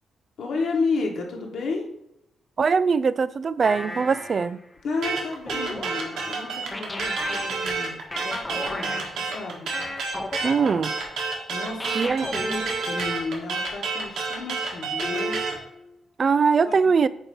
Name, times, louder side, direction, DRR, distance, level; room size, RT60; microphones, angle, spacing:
voice 1, 0.4-1.9 4.8-9.7 11.5-15.4 16.6-16.8, left 3 dB, 70° left, 1 dB, 1.4 m, -32 dB
voice 2, 2.6-4.6 10.4-10.9 12.0-12.2 16.2-17.1, right 5 dB, 40° right, 16 dB, 0.3 m, -21 dB
sound 1, 3.6-4.6 5.5-11.4 11.8-13.1 15.0-16.0, left 1 dB, 15° left, 0.7 m, -36 dB
sound 2, 5.0-15.6, right 4 dB, 80° right, 1.5 m, -29 dB
8.0 x 2.9 x 5.4 m, 0.81 s
cardioid pair, 130°, 0 cm